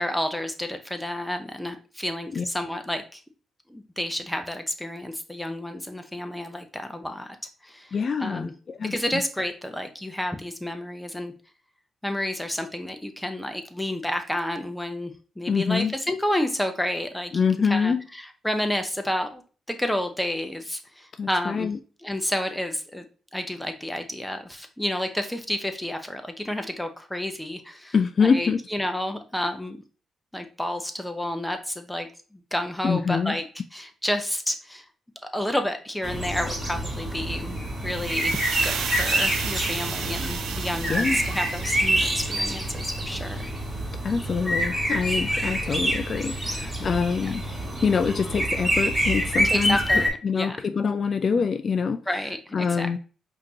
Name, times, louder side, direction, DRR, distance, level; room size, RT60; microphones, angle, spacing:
voice 1, 0.0-3.2 3.7-7.4 7.6-8.5 8.9-11.3 12.0-17.3 17.7-19.4 19.7-21.7 22.0-23.1 23.3-27.9 28.2-29.8 30.3-34.9 35.3-43.5 47.2-47.3 49.4-50.6 52.1-53.0, left 1 dB, 5° left, 0.8 m, -30 dB
voice 2, 7.9-9.2 15.5-15.9 17.3-18.0 21.2-21.8 27.9-28.6 32.8-33.4 40.9-41.2 44.0-47.4 47.8-52.0 52.5-53.0, left 5 dB, 50° left, 0.3 m, -25 dB
sound 1, 36.0-50.1, right 1 dB, 15° right, 2.2 m, -27 dB
sound 2, 37.9-42.9, right 7 dB, 80° right, 0.5 m, -33 dB
5.0 x 2.8 x 2.8 m
cardioid pair, 70°, 0 cm